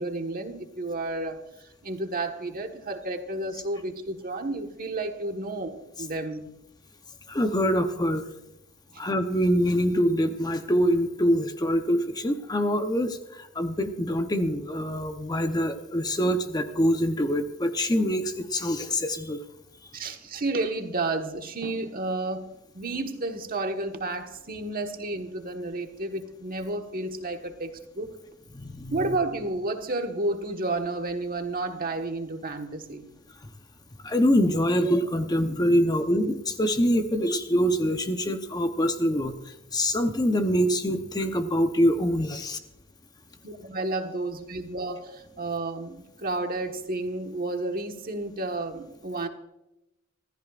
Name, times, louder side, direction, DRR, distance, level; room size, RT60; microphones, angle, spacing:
voice 1, 0.0-6.5 8.9-9.0 19.9-28.1 28.9-33.1 43.4-49.3, right 2 dB, 45° right, 4 dB, 1.4 m, -31 dB
voice 2, 7.3-8.2 9.0-19.4 28.5-29.1 34.0-42.6, equal, 20° left, 7 dB, 0.8 m, -25 dB
26.0 x 14.0 x 2.5 m, 0.90 s
head